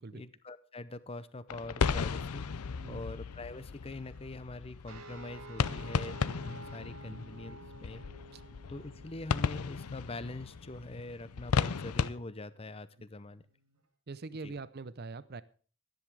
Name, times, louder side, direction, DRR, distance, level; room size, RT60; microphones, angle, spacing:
voice 1, 0.1-8.0 8.7-13.4 14.4-14.5, left 2 dB, 25° left, 15 dB, 0.6 m, -44 dB
sound 1, 1.5-12.1, left 5 dB, 85° left, 0.6 m, -35 dB
sound 2, 4.9-13.8, right 3 dB, 80° right, 2.1 m, -53 dB
voice 2, 14.1-15.4, right 3 dB, 45° right, 16 dB, 0.6 m, -43 dB
12.5 x 10.5 x 4.8 m, 0.41 s
head